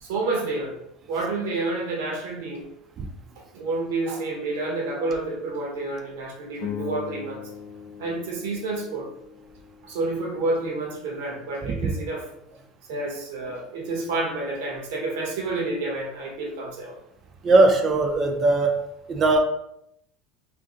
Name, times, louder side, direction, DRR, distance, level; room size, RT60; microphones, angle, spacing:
voice 1, 0.0-0.8 1.1-2.7 3.5-7.4 8.0-9.1 9.8-12.2 12.9-17.0, right 2 dB, 75° right, 0 dB, 0.8 m, -29 dB
sound 1, 6.6-11.1, left 9 dB, 55° left, 0.4 m, -40 dB
voice 2, 17.4-19.4, right 2 dB, 25° right, 5 dB, 0.3 m, -20 dB
2.6 x 2.5 x 3.6 m, 0.75 s
cardioid pair, 180°, 0 cm